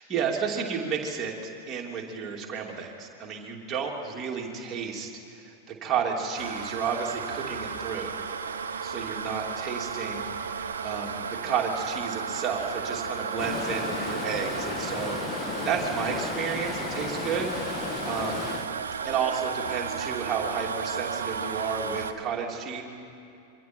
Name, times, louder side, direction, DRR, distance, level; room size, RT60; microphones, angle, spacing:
voice 1, 0.0-8.3 8.8-10.3 10.8-17.6 18.0-18.4 19.0-22.8, right 6 dB, 25° right, -1 dB, 2.9 m, -32 dB
sound 1, 6.4-22.1, right 6 dB, 65° right, 0.9 m, -34 dB
Stream, 13.4-18.7, left 5 dB, 25° left, 1.4 m, -34 dB
27.0 x 23.5 x 4.6 m, 2.6 s
figure-of-eight pair, 90°, 0 cm